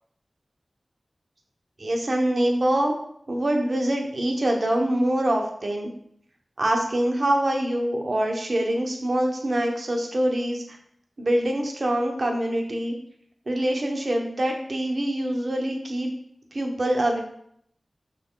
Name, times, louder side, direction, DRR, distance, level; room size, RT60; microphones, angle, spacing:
voice 1, 1.8-2.9 3.3-5.9 6.6-10.8 11.2-12.9 13.5-16.1 16.5-17.2, right 1 dB, 60° right, 2 dB, 1.1 m, -24 dB
5.7 x 4.3 x 3.9 m, 0.69 s
cardioid pair, 40°, 0 cm